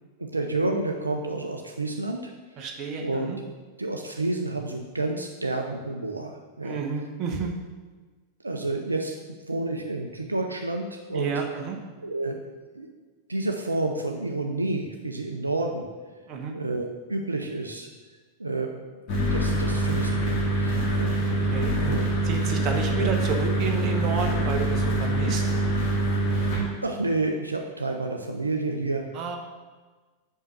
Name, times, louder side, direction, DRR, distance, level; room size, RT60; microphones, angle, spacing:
voice 1, 0.2-2.3 3.0-3.3 3.8-6.8 8.4-9.2 9.5-11.3 12.0-12.4 12.7-12.9 13.3-15.9 16.5-17.9 18.4-18.7 19.2-21.1 21.8-22.0 26.8-29.0, right 2 dB, 80° right, 3 dB, 0.6 m, -29 dB
voice 2, 2.6-3.4 6.6-7.5 11.1-11.8 16.3-16.5 21.5-25.4 29.1-29.4, right 5 dB, 35° right, 2 dB, 1.1 m, -30 dB
sound 1, 19.1-26.6, right 1 dB, 45° left, 2.2 m, -25 dB
5.6 x 5.5 x 6.2 m, 1.3 s
figure-of-eight pair, 90°, 0 cm